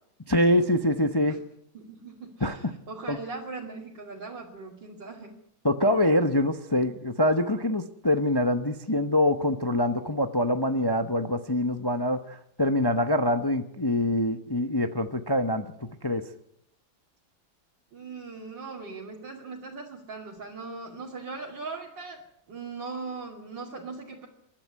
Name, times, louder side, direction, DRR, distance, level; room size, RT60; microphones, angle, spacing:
voice 1, 0.3-1.4 2.4-2.6 3.1-3.2 5.6-15.7 16.0-16.2, left 1 dB, 25° left, 8 dB, 0.5 m, -24 dB
voice 2, 1.7-5.4 17.9-22.2 22.5-24.3, right 4 dB, 65° right, -3 dB, 3.2 m, -39 dB
27.0 x 12.0 x 9.7 m, 0.76 s
omnidirectional pair, 2.1 m